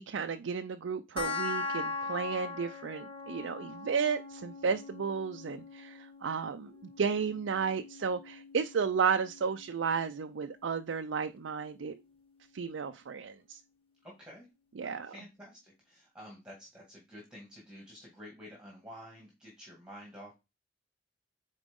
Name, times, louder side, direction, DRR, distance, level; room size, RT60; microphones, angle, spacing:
voice 1, 0.0-12.0 12.5-13.6 14.8-15.1, right 6 dB, 80° right, 0.5 m, -33 dB
sound 1, 1.2-12.1, left 4 dB, 30° left, 1.0 m, -42 dB
voice 2, 14.0-14.5 14.8-20.3, equal, 5° right, 2.1 m, -50 dB
8.8 x 4.1 x 3.6 m
head